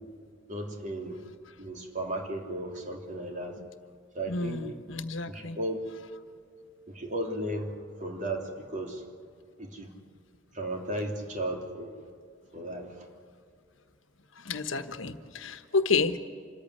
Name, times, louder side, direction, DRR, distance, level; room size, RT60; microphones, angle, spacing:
voice 1, 0.5-1.2 1.6-3.5 4.1-4.6 5.3-5.8 6.9-9.1 9.6-9.9 10.5-11.9 12.5-13.1, right 1 dB, 40° right, 2 dB, 3.1 m, -35 dB
voice 2, 4.3-5.6 14.4-16.2, left 4 dB, 80° left, 9 dB, 1.3 m, -30 dB
26.0 x 14.5 x 9.9 m, 2.2 s
head